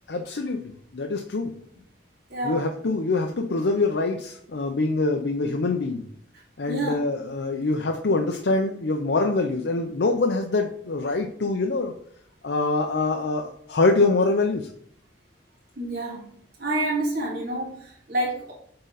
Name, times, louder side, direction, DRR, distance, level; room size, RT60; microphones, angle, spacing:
voice 1, 0.1-1.5 2.4-6.1 6.6-11.9 12.4-14.7, left 3 dB, 75° left, 2 dB, 0.7 m, -24 dB
voice 2, 2.3-2.6 6.7-7.0 15.8-16.3 16.6-18.5, right 1 dB, 60° right, -5 dB, 2.9 m, -28 dB
8.1 x 3.9 x 4.0 m, 0.64 s
head